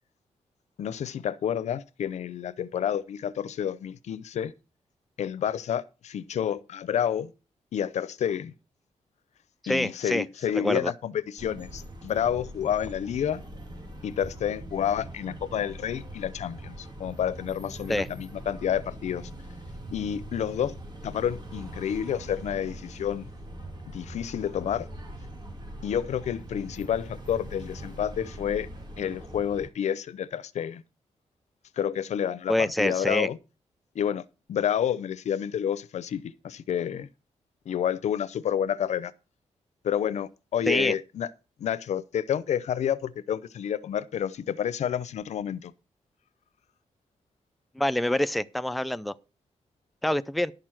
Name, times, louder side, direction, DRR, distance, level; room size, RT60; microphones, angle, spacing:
voice 1, 0.8-4.5 5.2-7.3 7.7-8.5 9.7-13.4 14.0-19.3 19.9-20.7 21.0-23.3 23.9-24.9 25.8-28.7 29.0-30.8 31.8-33.4 33.9-34.2 34.5-37.1 37.7-39.1 39.8-41.3 41.6-45.7, left 9 dB, 80° left, 0.6 m, -29 dB
voice 2, 9.6-10.2 10.5-10.9 17.9-18.1 32.5-33.3 40.7-40.9 47.8-49.1 50.0-50.5, left 1 dB, ahead, 0.4 m, -26 dB
sound 1, 11.4-29.7, right 1 dB, 35° right, 2.7 m, -42 dB
11.0 x 6.7 x 6.0 m
wide cardioid pair, 130°, 12 cm